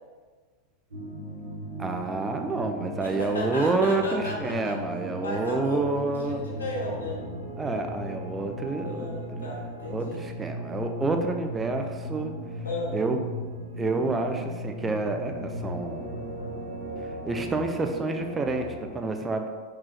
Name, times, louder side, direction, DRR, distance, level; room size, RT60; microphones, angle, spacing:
sound 1, 0.9-18.9, equal, 70° right, 0.9 m, -37 dB
voice 1, 1.8-6.4 7.6-9.1 9.4-9.5 9.9-12.3 12.9-13.2 13.8-16.1 17.2-19.5, right 3 dB, 15° right, 4 dB, 0.5 m, -28 dB
voice 2, 3.0-4.8 5.2-7.2 8.8-10.3 12.6-13.0, left 2 dB, 70° left, -3 dB, 1.0 m, -35 dB
4.7 x 3.7 x 3.1 m, 1.5 s
figure-of-eight pair, 90°, 0 cm